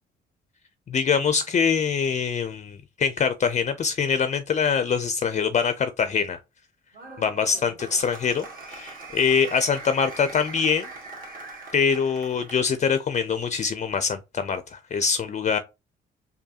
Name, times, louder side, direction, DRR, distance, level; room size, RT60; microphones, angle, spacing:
voice 1, 0.9-6.4 7.2-10.9 11.7-15.6, left 6 dB, 35° left, 0.4 m, -24 dB
Applause, 6.9-12.7, right 3 dB, 45° right, 1.6 m, -41 dB
4.5 x 2.7 x 2.8 m
cardioid pair, 90°, 20 cm